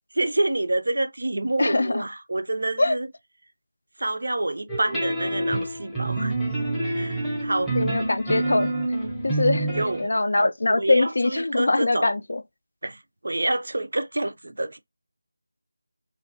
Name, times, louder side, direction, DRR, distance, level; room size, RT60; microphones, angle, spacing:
voice 1, 0.1-3.1 4.0-6.3 6.9-7.7 9.8-10.0 10.7-12.1 12.8-14.8, right 2 dB, 60° right, 0.4 m, -27 dB
voice 2, 1.6-2.0 2.8-3.0 7.8-8.7 9.2-9.7 10.0-12.4, left 2 dB, 55° left, 0.3 m, -22 dB
sound 1, 4.7-10.1, right 2 dB, ahead, 0.7 m, -27 dB
2.5 x 2.2 x 2.7 m
figure-of-eight pair, 165°, 0 cm